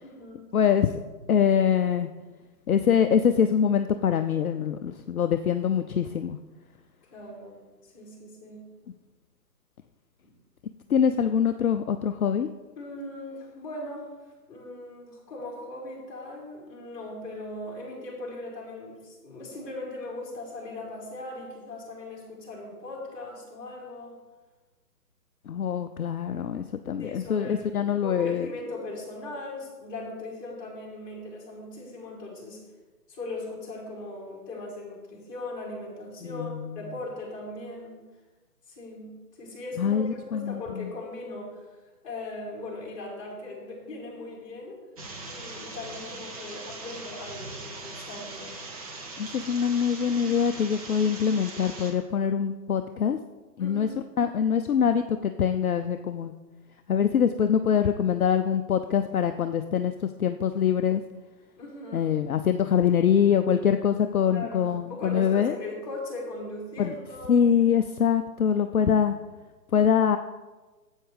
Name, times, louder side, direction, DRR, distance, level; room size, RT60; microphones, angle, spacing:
voice 1, 0.0-0.5 7.1-8.6 10.2-10.3 12.8-14.1 14.5-24.2 27.0-32.6 33.1-38.0 38.7-41.6 42.0-44.8 45.3-48.6 53.6-54.0 61.6-62.0 64.3-64.6 64.9-67.4, left 2 dB, 15° left, -5 dB, 3.2 m, -39 dB
voice 2, 0.5-1.0 1.3-2.1 2.7-6.4 10.9-12.5 25.5-28.5 36.2-36.5 39.8-40.6 49.2-53.2 53.6-53.9 54.2-56.3 56.9-61.0 61.9-65.5 66.8-66.9 67.3-69.1 69.7-70.2, left 8 dB, 60° left, 8 dB, 0.5 m, -24 dB
sound 1, 45.0-51.9, right 3 dB, 20° right, 1.0 m, -40 dB
12.5 x 8.1 x 3.3 m, 1.2 s
figure-of-eight pair, 140°, 50 cm